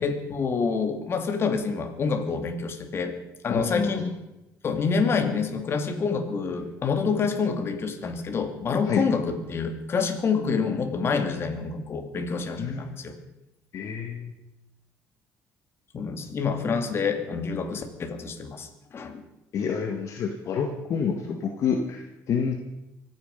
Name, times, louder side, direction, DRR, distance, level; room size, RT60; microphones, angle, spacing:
voice 1, 0.0-3.1 3.4-4.1 4.6-13.1 15.9-19.2, left 5 dB, 45° left, 6 dB, 2.4 m, -27 dB
voice 2, 3.5-4.1 8.8-9.0 12.6-12.9 13.7-14.3 19.5-22.5, left 6 dB, 60° left, 3 dB, 1.7 m, -28 dB
24.5 x 9.3 x 5.4 m, 0.94 s
cardioid pair, 100°, 6 cm